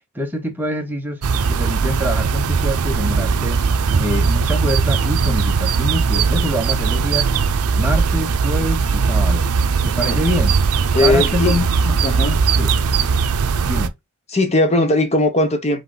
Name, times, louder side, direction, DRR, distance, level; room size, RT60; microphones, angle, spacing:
voice 1, 0.1-1.2 1.5-3.6 4.0-7.3 7.8-9.4 9.8-10.6 11.0-11.9 12.6-12.7 13.7-13.9, left 1 dB, 10° right, 1.0 m, -25 dB
sound 1, 1.2-13.9, right 5 dB, 80° right, 0.5 m, -19 dB
voice 2, 10.0-10.4 10.9-11.6 12.0-12.4 14.3-15.8, left 2 dB, 30° left, 0.8 m, -18 dB
5.6 x 2.4 x 3.8 m
head